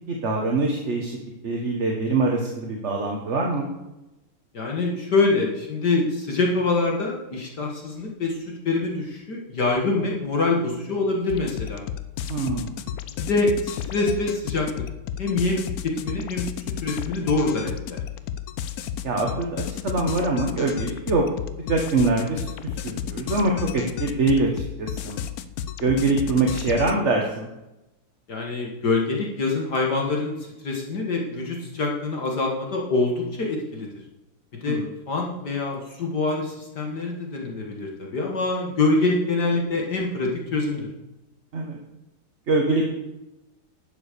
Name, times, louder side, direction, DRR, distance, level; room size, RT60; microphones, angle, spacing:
voice 1, 0.1-1.2 1.4-3.7 12.3-12.7 19.0-21.3 21.7-22.5 22.8-25.2 25.8-27.5 34.6-34.9 41.5-41.8 42.5-42.9, right 3 dB, 35° right, 1 dB, 1.4 m, -24 dB
voice 2, 4.5-11.8 13.2-14.7 15.2-16.5 16.8-18.0 28.3-33.9 34.6-34.8 35.1-40.9, left 3 dB, 50° left, 0 dB, 2.2 m, -25 dB
sound 1, 11.3-27.0, left 9 dB, 90° left, 0.8 m, -32 dB
11.5 x 7.7 x 6.8 m, 0.96 s
omnidirectional pair, 2.4 m